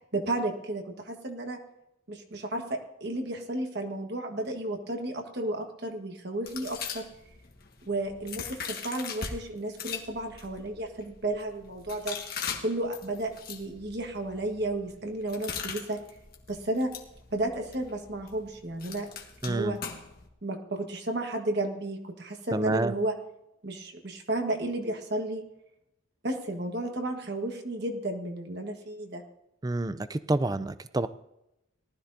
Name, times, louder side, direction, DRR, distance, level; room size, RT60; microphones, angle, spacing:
voice 1, 0.1-1.6 2.1-7.0 7.8-12.2 12.6-16.0 16.5-16.9 17.3-19.1 19.4-19.8 20.4-23.2 23.6-25.4 26.2-29.2, right 1 dB, 55° right, 3 dB, 1.4 m, -33 dB
sound 1, 6.5-9.3 9.7-20.3, left 6 dB, 50° left, 1.6 m, -41 dB
voice 2, 19.4-19.8 22.5-22.9 29.6-31.1, right 2 dB, 20° right, 14 dB, 0.4 m, -28 dB
19.0 x 13.0 x 2.7 m, 0.85 s
head